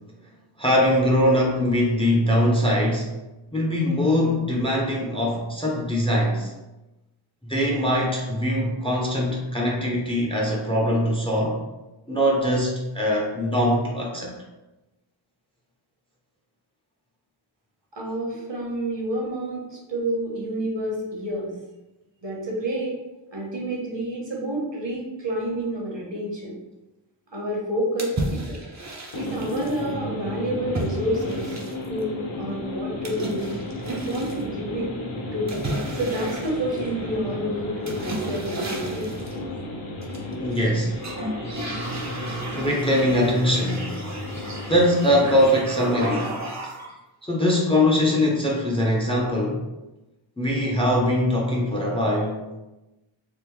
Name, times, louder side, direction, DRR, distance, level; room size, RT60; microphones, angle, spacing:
voice 1, 0.6-3.1 3.5-6.5 7.4-11.6 12.1-14.3 40.4-40.9 42.5-43.9 44.7-46.4 47.2-49.6 50.4-52.5, left 1 dB, 10° left, -2 dB, 0.5 m, -22 dB
voice 2, 17.9-21.5 22.2-23.0 23.3-26.5 27.3-28.4 29.1-31.5 31.9-33.5 33.8-34.9 35.3-35.6 36.0-39.0, right 1 dB, 60° right, -3 dB, 1.0 m, -29 dB
sound 1, 28.0-29.8 30.7-32.0 33.0-34.4 35.5-37.2 37.8-39.4 40.0-40.6 41.0-47.0, right 1 dB, 35° right, 0.6 m, -33 dB
sound 2, 29.1-45.5, left 1 dB, 70° left, 0.7 m, -33 dB
3.5 x 2.0 x 3.0 m, 1.0 s
wide cardioid pair, 45°, 50 cm